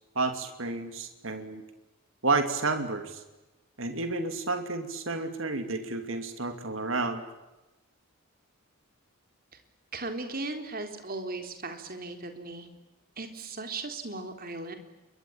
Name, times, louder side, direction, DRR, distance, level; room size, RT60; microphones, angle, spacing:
voice 1, 0.1-1.6 2.2-3.2 3.8-7.2, right 3 dB, 65° right, 7 dB, 2.7 m, -30 dB
voice 2, 9.9-12.7 13.2-14.7, right 3 dB, 40° right, 6 dB, 3.9 m, -37 dB
28.0 x 23.5 x 8.8 m, 1.0 s
head